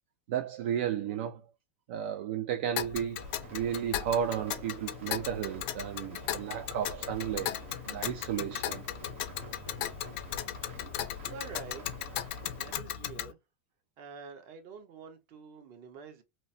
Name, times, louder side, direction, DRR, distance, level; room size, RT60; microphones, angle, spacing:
voice 1, 0.3-1.4 1.9-3.2 3.5-7.5 7.9-8.8, right 9 dB, 60° right, 0.4 m, -33 dB
Tick, 2.8-13.3, left 12 dB, 50° left, 0.4 m, -37 dB
sound 1, 3.2-12.8, right 5 dB, 85° right, 1.0 m, -51 dB
voice 2, 11.2-12.0 12.6-13.4 14.0-16.2, right 5 dB, 45° right, 0.8 m, -47 dB
2.9 x 2.0 x 2.6 m
supercardioid pair, 155°, 7 cm